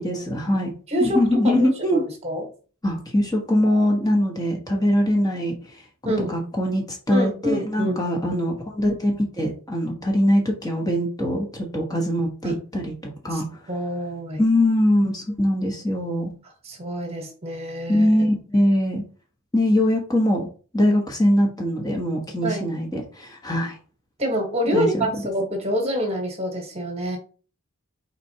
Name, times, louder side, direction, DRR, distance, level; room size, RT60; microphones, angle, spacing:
voice 1, 0.0-0.7 1.0-2.0 2.8-5.6 6.2-13.4 14.4-16.3 17.9-19.0 19.5-20.5 20.7-23.7 24.7-25.1, left 1 dB, 20° left, 0 dB, 1.1 m, -22 dB
voice 2, 0.9-2.5 6.0-6.3 7.1-8.0 12.4-12.6 13.3-13.4 13.7-14.4 16.6-18.1 22.4-22.7 24.2-27.2, equal, 30° right, 3 dB, 1.3 m, -26 dB
4.5 x 4.1 x 2.8 m, 0.39 s
head